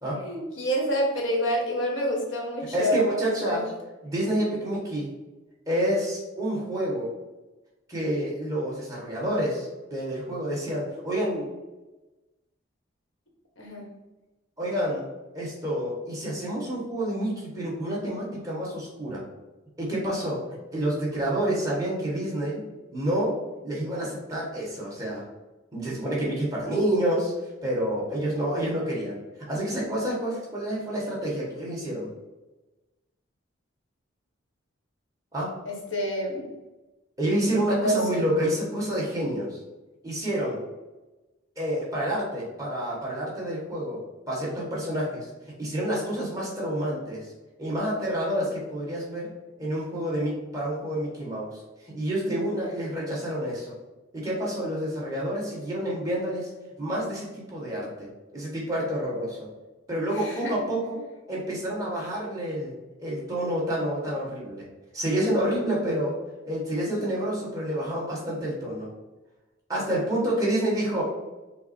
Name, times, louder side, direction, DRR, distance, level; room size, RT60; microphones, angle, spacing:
voice 1, 0.2-3.6 13.6-13.9 35.7-36.5 37.8-38.2 60.2-60.5, equal, 75° left, 0 dB, 1.1 m, -28 dB
voice 2, 2.7-3.7 4.0-5.1 5.7-7.1 7.9-11.5 14.6-15.0 15.3-19.2 19.8-20.4 20.7-22.6 22.9-25.2 25.7-27.3 27.6-29.2 29.5-32.1 35.3-35.6 37.2-39.6 40.0-40.6 41.6-44.0 44.3-45.3 45.6-47.3 47.6-49.3 49.6-51.6 51.9-53.7 54.1-56.5 56.8-59.5 59.9-64.7 64.9-66.2 66.4-68.9 69.7-71.0, right 1 dB, 15° right, -5 dB, 1.3 m, -28 dB
5.6 x 2.0 x 4.2 m, 1.1 s
head